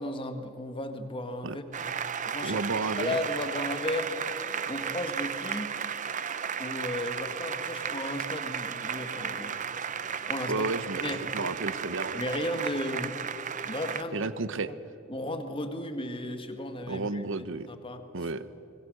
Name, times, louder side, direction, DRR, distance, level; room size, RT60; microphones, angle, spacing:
voice 1, 0.0-1.6 2.2-2.6 3.0-4.1 4.7-5.7 6.6-9.5 10.3-10.7 11.0-11.3 12.1-13.2 13.6-14.3 14.7-14.8 15.1-17.2 17.7-18.0, left 1 dB, 25° left, 7 dB, 1.7 m, -34 dB
Applause, 1.7-14.0, right 7 dB, 40° right, 0.7 m, -34 dB
voice 2, 2.4-3.2 10.5-12.2 14.1-14.7 16.9-17.7 18.1-18.4, right 3 dB, 70° right, 14 dB, 0.9 m, -32 dB
24.5 x 20.5 x 6.6 m, 2.8 s
head